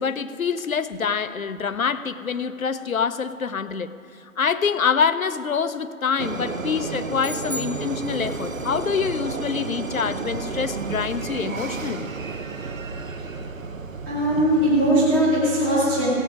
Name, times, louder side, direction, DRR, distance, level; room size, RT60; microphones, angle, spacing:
voice 1, 0.0-3.9 4.4-12.1, left 6 dB, 70° left, 12 dB, 0.7 m, -25 dB
sound 1, 6.2-14.9, right 4 dB, 65° right, 0.9 m, -32 dB
sound 2, 7.2-8.7, left 1 dB, 35° right, 0.7 m, -36 dB
voice 2, 14.0-16.1, right 1 dB, 5° right, -7 dB, 1.2 m, -20 dB
17.0 x 7.3 x 6.3 m, 2.4 s
figure-of-eight pair, 150°, 43 cm